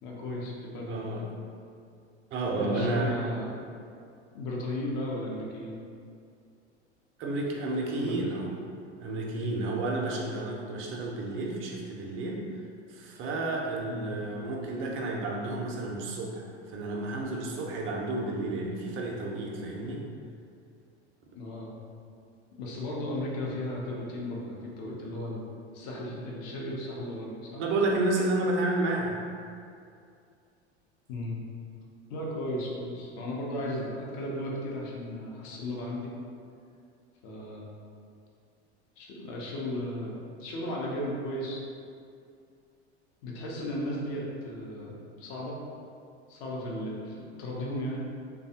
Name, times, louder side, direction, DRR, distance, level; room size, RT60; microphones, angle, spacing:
voice 1, 0.0-1.2 2.5-3.5 4.3-5.8 8.0-8.1 13.9-14.1 21.4-21.7 22.6-25.5 25.7-27.6 31.1-31.4 32.1-36.1 37.2-37.7 39.0-41.6 43.2-45.6 46.3-48.0, left 1 dB, 50° left, -3 dB, 0.8 m, -35 dB
voice 2, 0.9-1.2 2.3-3.2 7.2-8.6 9.0-12.6 12.9-20.0 27.6-29.2, right 2 dB, 35° right, -1 dB, 0.6 m, -31 dB
3.3 x 2.3 x 2.7 m, 2.4 s
figure-of-eight pair, 80°, 34 cm